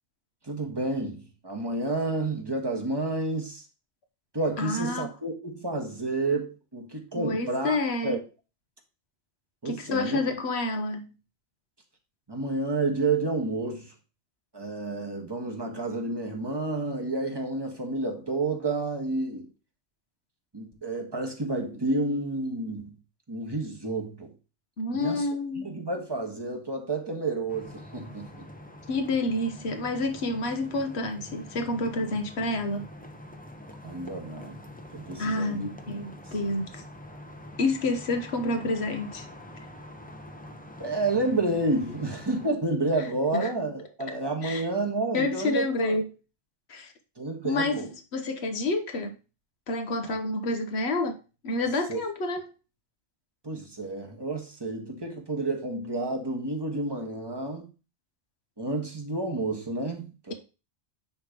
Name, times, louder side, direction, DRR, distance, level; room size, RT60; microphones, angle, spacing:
voice 1, 0.4-3.6 4.3-7.8 8.0-8.2 9.6-10.2 12.3-13.9 14.5-19.5 20.5-23.0 23.3-24.3 24.9-25.3 25.6-28.4 33.8-34.7 34.9-35.7 40.8-46.0 47.2-47.9 50.0-50.1 51.9-52.0 53.4-57.7 58.6-60.3, right 2 dB, 25° right, 1.5 m, -30 dB
voice 2, 4.6-5.1 7.1-8.2 9.6-11.1 24.8-25.8 28.9-32.9 35.2-36.8 37.6-39.3 43.3-43.5 44.4-44.7 45.1-46.1 46.7-46.9 47.4-49.1 49.7-51.2 51.4-52.5, left 2 dB, 80° left, 1.3 m, -29 dB
sound 1, 27.5-42.5, left 1 dB, 10° left, 0.7 m, -45 dB
9.7 x 3.2 x 5.1 m
omnidirectional pair, 1.1 m